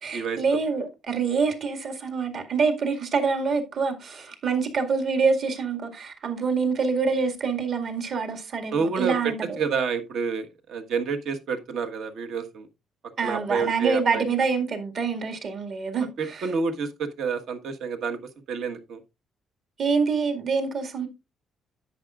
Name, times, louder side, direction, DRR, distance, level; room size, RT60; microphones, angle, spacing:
voice 1, 0.0-9.6 13.2-16.5 19.8-21.1, right 5 dB, 50° right, 2.0 m, -26 dB
voice 2, 8.7-12.7 13.2-14.2 16.2-18.2 18.5-19.0, right 5 dB, 65° right, 1.4 m, -28 dB
10.5 x 8.4 x 2.4 m
cardioid pair, 145°, 0 cm